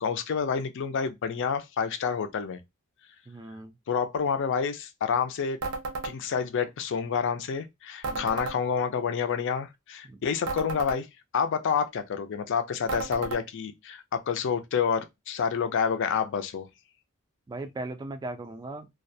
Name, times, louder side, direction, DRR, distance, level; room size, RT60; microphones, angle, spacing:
voice 1, 0.0-2.6 3.9-5.6 6.0-11.1 11.3-16.7, left 6 dB, 60° left, 0.4 m, -28 dB
voice 2, 3.3-3.7 8.1-8.4 10.1-10.2 17.5-18.9, right 2 dB, 20° right, 0.3 m, -38 dB
sound 1, 5.6-6.2 8.0-8.6 10.5-11.0 12.9-13.4, right 3 dB, 80° right, 0.5 m, -33 dB
2.3 x 2.1 x 2.6 m
head